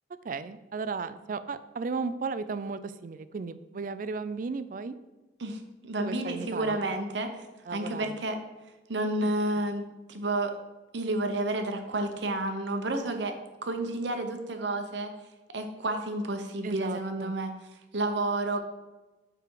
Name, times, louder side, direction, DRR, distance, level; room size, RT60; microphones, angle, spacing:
voice 1, 0.2-5.0 6.0-6.9 7.7-8.2 9.2-9.3 16.6-17.3, right 4 dB, 50° right, 13 dB, 0.4 m, -35 dB
voice 2, 5.4-7.3 7.7-8.4 8.9-10.5 10.9-13.3 13.6-15.1 15.5-17.5 17.9-18.6, right 2 dB, 85° right, 6 dB, 0.9 m, -30 dB
6.8 x 4.9 x 4.8 m, 1.1 s
head